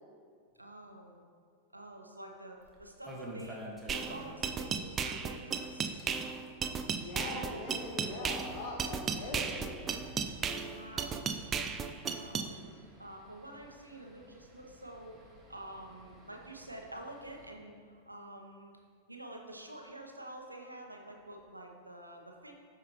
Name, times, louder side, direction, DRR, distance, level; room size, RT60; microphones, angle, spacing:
voice 1, 0.6-1.2 1.7-3.6 3.9-6.0 10.7-11.3 12.2-12.7 13.0-15.2 15.5-18.7 19.1-22.5, right 1 dB, 85° right, 2 dB, 0.9 m, -48 dB
sound 1, 2.6-4.6 4.8-4.9 5.2-5.3 5.8-17.5, equal, 5° right, 1.5 m, -52 dB
sound 2, 3.9-12.5, right 6 dB, 25° right, 0.4 m, -35 dB
voice 2, 6.6-10.0, left 2 dB, 45° left, 0 dB, 1.4 m, -42 dB
12.0 x 4.9 x 3.0 m, 2.1 s
figure-of-eight pair, 90°, 0 cm